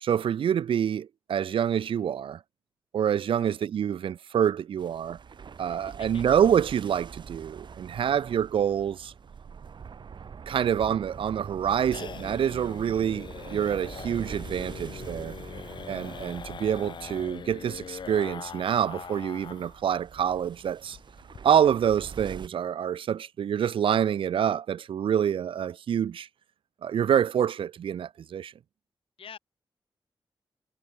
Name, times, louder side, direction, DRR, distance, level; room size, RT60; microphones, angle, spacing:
voice 1, 0.0-2.4 2.9-5.2 5.6-9.1 10.5-15.3 15.9-21.0 21.4-26.3 26.8-28.5, right 9 dB, 75° right, 0.4 m, -26 dB
sound 1, 4.8-22.5, right 6 dB, 60° right, 1.3 m, -44 dB
voice 2, 5.7-6.4 29.2-29.4, left 7 dB, 85° left, 4.3 m, -48 dB
sound 2, 10.7-19.8 20.1-20.2 20.5-20.6 20.9-21.4, left 6 dB, 60° left, 0.8 m, -42 dB
wide cardioid pair, 125°, 9 cm